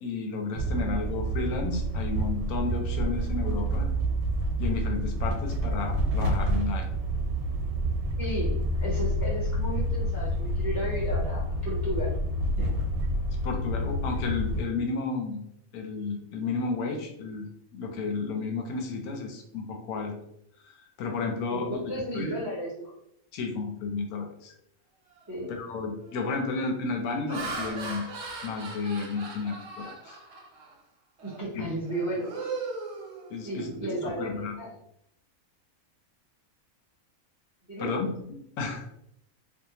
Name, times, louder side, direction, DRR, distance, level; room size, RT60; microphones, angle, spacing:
voice 1, 0.0-3.9 4.6-6.9 13.4-15.4 15.7-17.5 17.7-20.1 20.6-22.4 23.3-24.5 25.5-28.0 28.4-30.2 31.5-31.7 33.3-33.8 34.1-34.5 37.8-38.1 38.6-38.8, left 4 dB, 90° left, 3 dB, 1.1 m, -32 dB
sound 1, 0.5-14.6, right 1 dB, 90° right, 1.1 m, -28 dB
voice 2, 8.2-12.1 12.6-12.7 21.5-22.9 25.3-25.5 31.2-32.3 33.4-34.7 37.7-38.0, equal, 20° right, -7 dB, 0.4 m, -34 dB
Laughter, 25.2-25.4 26.0-26.3 26.9-30.7 31.2-31.4 31.8-33.7, right 3 dB, 60° right, 0.8 m, -38 dB
2.7 x 2.1 x 2.7 m, 0.74 s
omnidirectional pair, 1.5 m